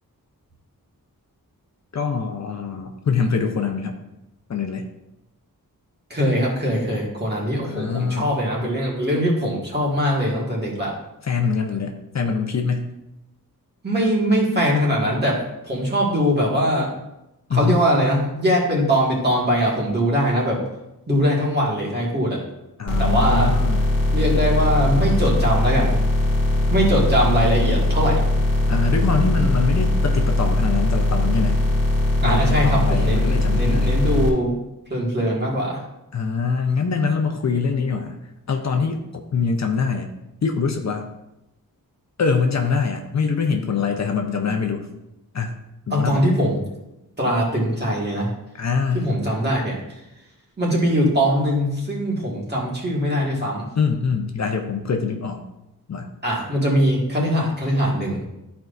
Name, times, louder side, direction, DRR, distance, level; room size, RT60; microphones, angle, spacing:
voice 1, 1.9-4.0 4.5-4.8 7.6-8.3 11.2-12.9 17.5-17.8 22.8-23.9 28.7-31.6 32.2-33.9 36.1-38.2 38.5-39.0 39.3-40.1 40.4-41.1 42.2-44.9 45.3-45.6 45.9-46.3 48.5-49.1 53.8-55.4 55.9-56.1, left 5 dB, 50° left, 3 dB, 0.7 m, -24 dB
voice 2, 6.1-10.9 13.8-16.9 17.5-20.6 21.1-22.4 23.0-23.6 24.1-25.9 26.7-28.2 32.2-34.6 34.9-35.8 45.9-46.6 47.2-48.3 48.9-49.8 50.6-53.6 56.2-58.2, equal, 30° right, -4 dB, 1.9 m, -21 dB
sound 1, 22.9-34.3, left 2 dB, 45° right, 2.1 m, -20 dB
13.0 x 4.6 x 2.6 m, 0.92 s
wide cardioid pair, 175°, 35 cm